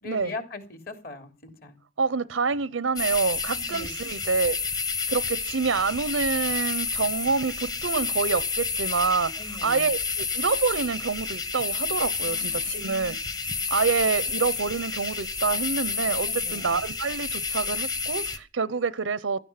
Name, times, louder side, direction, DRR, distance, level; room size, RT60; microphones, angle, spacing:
voice 1, 0.0-1.7 3.7-3.9 9.3-9.9 12.2-13.0 13.8-13.9 16.2-16.8, left 3 dB, 50° left, 3.1 m, -40 dB
voice 2, 2.0-4.6 5.1-9.3 9.6-13.2 13.7-19.4, right 4 dB, 85° right, 0.7 m, -27 dB
sound 1, 3.0-18.4, left 4 dB, 20° left, 1.1 m, -30 dB
16.0 x 12.5 x 5.8 m
head